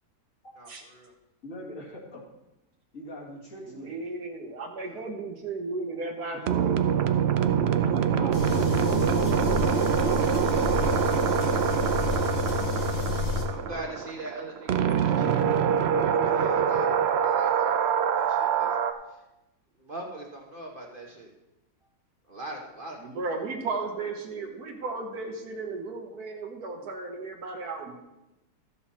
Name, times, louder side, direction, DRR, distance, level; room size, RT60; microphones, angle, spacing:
voice 1, 1.4-2.2 2.9-4.0 6.3-6.4 7.8-8.7, equal, 50° left, -3 dB, 2.3 m, -42 dB
voice 2, 3.7-6.8 23.0-28.0, right 3 dB, 65° right, 2 dB, 1.5 m, -35 dB
sound 1, 6.5-18.9, right 8 dB, 90° right, 0.5 m, -25 dB
sound 2, 8.3-13.4, left 6 dB, 80° left, 1.9 m, -30 dB
voice 3, 13.5-15.6 16.0-16.9 17.2-18.8 19.1-19.2 19.8-21.3 22.3-23.4, right 1 dB, 35° right, 0 dB, 1.1 m, -42 dB
13.0 x 7.0 x 4.2 m, 0.96 s
omnidirectional pair, 1.8 m